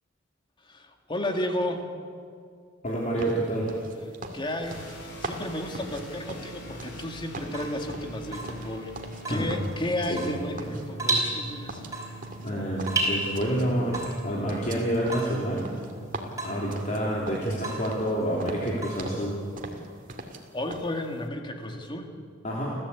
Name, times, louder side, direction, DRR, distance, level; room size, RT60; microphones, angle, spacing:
voice 1, 0.6-1.9 4.3-4.9 5.2-8.9 9.3-11.8 20.5-22.2, left 1 dB, 25° left, 3 dB, 2.2 m, -32 dB
voice 2, 2.8-3.7 9.3-9.5 10.1-10.2 12.4-14.0 14.2-15.7 16.4-19.4 22.4-22.7, right 1 dB, 40° left, -4 dB, 3.2 m, -28 dB
sound 1, 3.2-7.1 7.3-9.2 9.5-10.3 10.6-11.4 11.7-13.7 13.9-17.6 17.8-18.1 18.4-19.3 19.6-20.4 20.7-20.9, right 2 dB, 45° right, 2.2 m, -40 dB
sound 2, 4.6-19.0, right 2 dB, 65° left, 5.9 m, -44 dB
Water tap faucet / Drip, 7.4-19.6, right 2 dB, 20° right, 4.7 m, -35 dB
30.0 x 14.0 x 8.4 m, 2.2 s
head